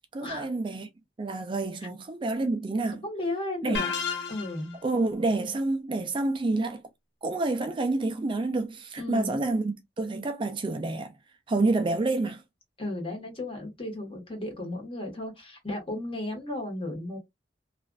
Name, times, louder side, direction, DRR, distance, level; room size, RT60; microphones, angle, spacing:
voice 1, 0.1-0.9 1.2-3.0 3.6-3.8 4.8-6.8 7.2-11.1 11.5-12.4, right 2 dB, 30° right, 0.4 m, -28 dB
voice 2, 3.0-3.9 4.3-4.8 9.0-9.4 12.8-17.2, left 1 dB, 30° left, 1.4 m, -34 dB
sound 1, 3.7-4.8, left 6 dB, 85° left, 0.7 m, -31 dB
3.2 x 2.5 x 2.3 m
head